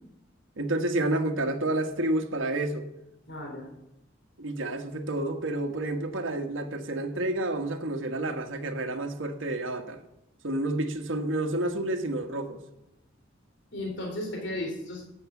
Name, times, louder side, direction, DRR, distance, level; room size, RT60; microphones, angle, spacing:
voice 1, 0.6-2.8 4.4-10.0 10.4-12.6, right 1 dB, 85° right, 1.4 m, -29 dB
voice 2, 3.3-3.7 13.7-15.0, left 1 dB, 65° left, 3.6 m, -34 dB
13.0 x 7.8 x 8.3 m
head